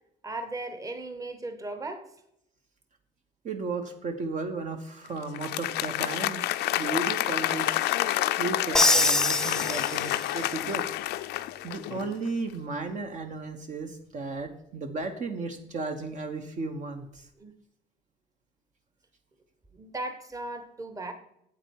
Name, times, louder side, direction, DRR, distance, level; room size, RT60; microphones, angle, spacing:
voice 1, 0.2-2.1 17.4-17.5 19.7-21.1, right 2 dB, 20° right, 8 dB, 1.1 m, -37 dB
voice 2, 3.4-6.4 6.8-8.0 8.4-10.9 11.6-17.3, right 3 dB, 45° right, 6 dB, 1.0 m, -34 dB
Applause, 5.2-12.2, left 15 dB, 80° left, 0.5 m, -29 dB
Crash cymbal, 8.7-10.5, left 2 dB, 5° left, 0.5 m, -24 dB
8.1 x 7.5 x 4.7 m, 0.78 s
cardioid pair, 110°, 17 cm